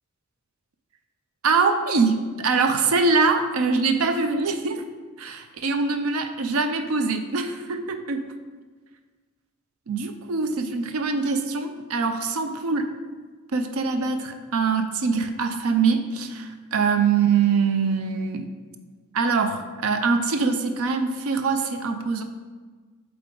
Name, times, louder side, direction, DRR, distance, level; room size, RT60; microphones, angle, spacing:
voice 1, 1.4-4.8 5.2-8.3 9.9-12.9 13.5-18.5 19.1-22.2, right 4 dB, 80° right, 7 dB, 0.5 m, -23 dB
8.3 x 3.5 x 3.8 m, 1.4 s
head